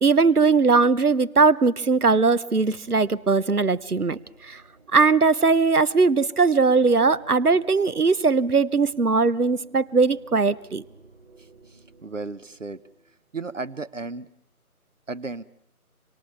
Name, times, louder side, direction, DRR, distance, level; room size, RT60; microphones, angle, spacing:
voice 1, 0.0-4.2 4.5-4.6 4.9-10.8, right 4 dB, 85° right, 19 dB, 1.0 m, -20 dB
sound 1, 2.1-13.2, right 3 dB, 30° right, 3.8 m, -53 dB
voice 2, 11.7-12.8 13.3-14.3 15.1-15.4, right 3 dB, 55° right, 17 dB, 1.0 m, -34 dB
26.5 x 25.5 x 7.1 m, 0.79 s
figure-of-eight pair, 160°, 44 cm